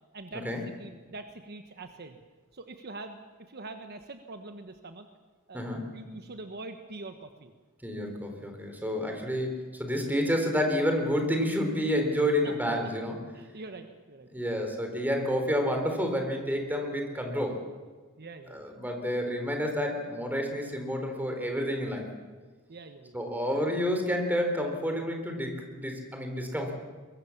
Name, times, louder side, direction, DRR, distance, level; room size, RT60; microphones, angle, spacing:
voice 1, 0.1-0.5 0.8-2.2 2.5-5.1 5.5-5.6 5.9-7.5 12.4-12.5 13.3-14.3 18.2-18.7 22.7-23.2, right 2 dB, 50° right, 7 dB, 1.3 m, -44 dB
voice 2, 7.8-13.2 14.3-17.6 18.5-22.1 23.1-26.7, equal, 10° right, 3 dB, 3.9 m, -29 dB
23.0 x 22.0 x 7.2 m, 1.4 s
head